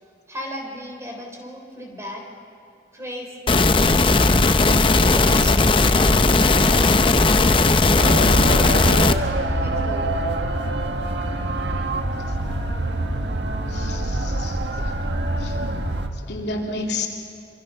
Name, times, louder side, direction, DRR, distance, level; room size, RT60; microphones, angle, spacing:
voice 1, 0.0-2.3 2.9-3.4 5.0-7.0 7.5-10.1, equal, 15° right, 1 dB, 3.8 m, -36 dB
sound 1, 3.5-9.1, left 3 dB, 30° left, 0.7 m, -17 dB
sound 2, 8.0-16.1, right 1 dB, 85° right, 1.5 m, -25 dB
voice 2, 13.7-14.9 15.4-15.6 16.1-17.1, left 2 dB, 75° left, 0 dB, 2.9 m, -32 dB
27.0 x 25.0 x 5.6 m, 2.5 s
head